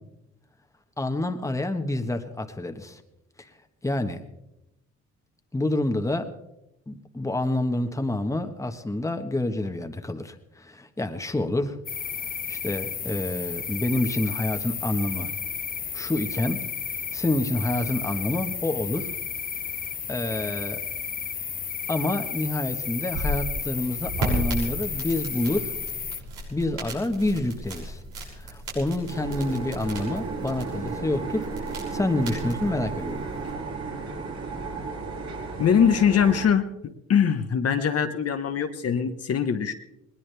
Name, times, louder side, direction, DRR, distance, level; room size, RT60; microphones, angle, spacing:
voice 1, 1.0-3.0 3.8-4.2 5.5-6.3 6.9-11.8 12.5-15.3 15.9-16.6 17.1-19.1 20.1-20.8 21.9-25.7 26.5-28.0 28.3-31.4 31.9-33.2, left 2 dB, 10° left, 6 dB, 1.4 m, -28 dB
sound 1, 11.9-26.2, left 7 dB, 30° left, 0.6 m, -33 dB
sound 2, 22.9-33.5, right 1 dB, 85° right, 6.5 m, -35 dB
sound 3, 29.1-36.5, right 4 dB, 65° right, 5.0 m, -34 dB
voice 2, 35.6-36.6 37.1-39.7, left 7 dB, 55° left, 7 dB, 1.2 m, -22 dB
20.5 x 19.5 x 3.4 m, 0.88 s
cardioid pair, 90°, 30 cm